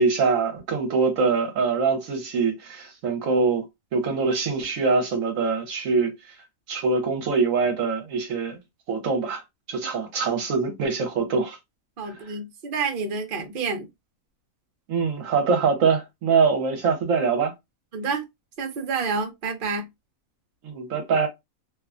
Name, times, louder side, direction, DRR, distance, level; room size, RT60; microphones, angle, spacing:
voice 1, 0.0-3.7 3.9-6.2 6.7-8.6 8.9-9.4 9.7-11.6 14.9-17.5 20.6-21.3, right 4 dB, 70° right, 1.1 m, -23 dB
voice 2, 12.0-13.9 17.9-18.2 18.6-19.9, right 4 dB, 45° right, 0.8 m, -28 dB
3.0 x 2.2 x 2.4 m
omnidirectional pair, 1.5 m